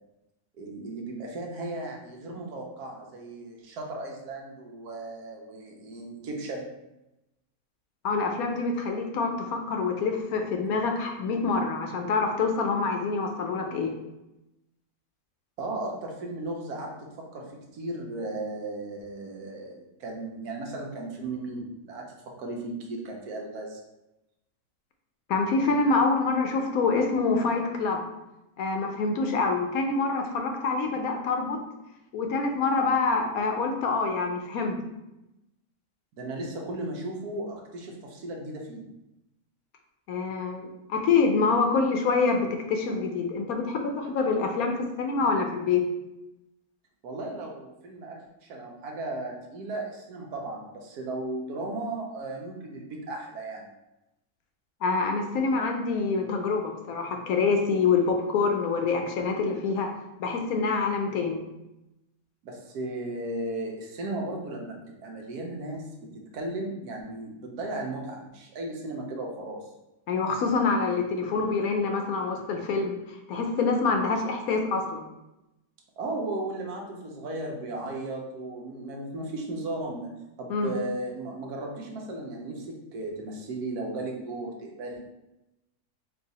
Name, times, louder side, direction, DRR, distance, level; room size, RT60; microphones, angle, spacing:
voice 1, 0.5-6.7 15.6-22.1 22.4-23.8 36.1-38.8 47.0-53.7 62.4-69.7 76.0-80.1 80.4-85.0, right 2 dB, 75° right, 0 dB, 1.3 m, -36 dB
voice 2, 8.0-13.9 25.3-28.0 28.6-31.6 32.1-34.8 40.1-45.8 54.8-59.9 60.2-61.4 70.1-75.1 80.5-80.8, left 4 dB, 70° left, 3 dB, 1.0 m, -26 dB
4.6 x 2.4 x 4.0 m, 0.93 s
omnidirectional pair, 1.7 m